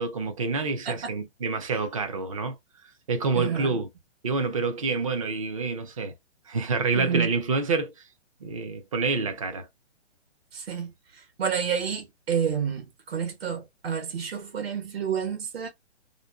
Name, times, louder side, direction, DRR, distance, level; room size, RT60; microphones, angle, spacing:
voice 1, 0.0-2.6 3.1-3.9 4.2-6.1 6.5-7.9 8.4-9.7, right 4 dB, 30° right, 0.4 m, -27 dB
voice 2, 3.3-3.7 7.0-7.3 10.5-10.9 11.4-15.7, right 7 dB, 60° right, 1.1 m, -29 dB
2.5 x 2.2 x 2.3 m
hypercardioid pair, 155°, 35 cm